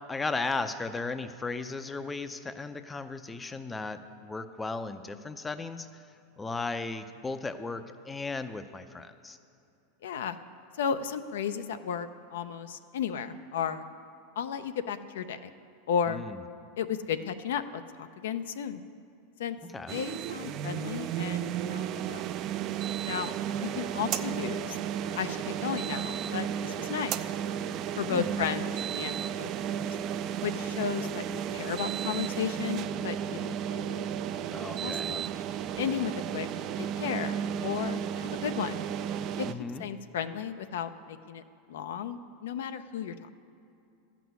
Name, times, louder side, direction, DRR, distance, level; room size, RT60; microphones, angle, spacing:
voice 1, 0.1-5.9 6.4-9.4 16.1-16.4 19.7-20.0 28.0-28.5 34.5-35.2 39.4-39.8, left 3 dB, 10° left, 10 dB, 0.5 m, -36 dB
voice 2, 10.0-10.4 10.8-13.8 14.4-15.4 15.9-16.2 16.8-18.8 19.4-19.6 19.9-22.2 23.0-23.3 23.6-24.8 25.2-27.2 28.0-29.5 30.4-34.0 34.8-35.2 35.8-36.5 36.8-38.8 39.4-39.5 39.8-41.4 41.7-43.1, left 7 dB, 85° left, 10 dB, 0.6 m, -34 dB
sound 1, 19.9-39.5, right 9 dB, 40° right, 0.4 m, -33 dB
12.0 x 6.1 x 9.4 m, 2.6 s
supercardioid pair, 140°, 0 cm